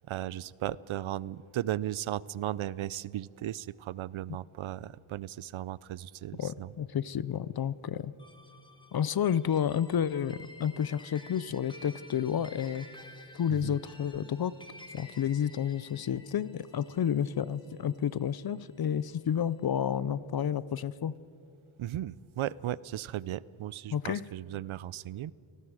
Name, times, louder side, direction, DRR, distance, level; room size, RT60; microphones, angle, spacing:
voice 1, 0.1-6.7 13.5-13.8 21.8-25.3, right 12 dB, 80° right, 21 dB, 0.5 m, -36 dB
voice 2, 6.3-8.1 8.9-12.9 13.3-14.5 14.9-21.1 23.9-24.2, left 9 dB, 50° left, 19 dB, 0.5 m, -30 dB
sound 1, 8.2-18.8, left 2 dB, 10° left, 1.9 m, -53 dB
29.5 x 19.0 x 4.9 m, 2.5 s
wide cardioid pair, 130°, 48 cm